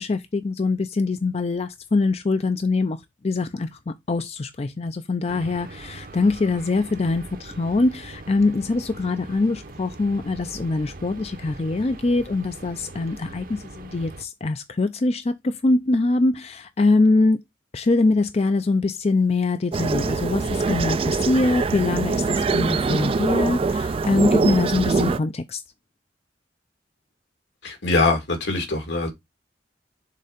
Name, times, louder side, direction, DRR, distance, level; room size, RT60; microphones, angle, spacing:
voice 1, 0.0-3.0 3.2-17.4 17.7-25.6, left 3 dB, 35° left, 0.4 m, -23 dB
sound 1, 5.3-14.2, right 2 dB, 50° right, 0.8 m, -41 dB
sound 2, 19.7-25.2, right 4 dB, 30° right, 0.3 m, -23 dB
voice 2, 27.6-29.1, left 3 dB, 80° left, 2.6 m, -23 dB
6.6 x 3.7 x 5.0 m
head